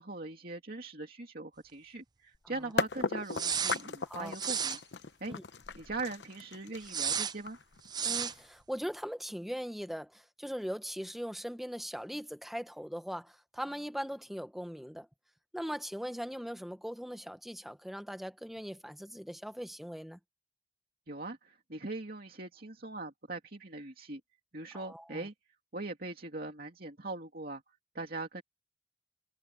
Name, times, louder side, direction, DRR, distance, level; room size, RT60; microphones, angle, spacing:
voice 1, 0.0-4.8 5.2-5.4 5.7-7.6 21.1-24.2 24.5-25.3 25.7-27.6 27.9-28.4, right 2 dB, 55° right, 2.5 m, -41 dB
sound 1, 2.3-2.4 2.8-8.6, left 4 dB, 75° left, 0.9 m, -36 dB
sound 2, 3.3-3.8 4.3-4.8 6.8-7.3 7.9-8.3, right 7 dB, 25° right, 0.5 m, -32 dB
voice 2, 8.0-15.1 15.5-20.2 24.7-25.3, equal, ahead, 1.2 m, -40 dB
head